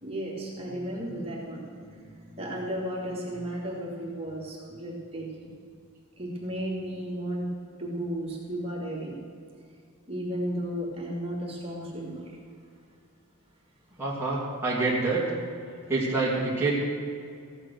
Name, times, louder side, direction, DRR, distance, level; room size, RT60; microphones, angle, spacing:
voice 1, 0.0-5.5 6.2-7.5 7.8-9.1 10.1-12.4, equal, 25° right, -4 dB, 3.0 m, -34 dB
voice 2, 14.0-15.2 15.9-16.7, right 3 dB, 10° right, -7 dB, 2.8 m, -26 dB
15.5 x 10.0 x 6.6 m, 2.3 s
head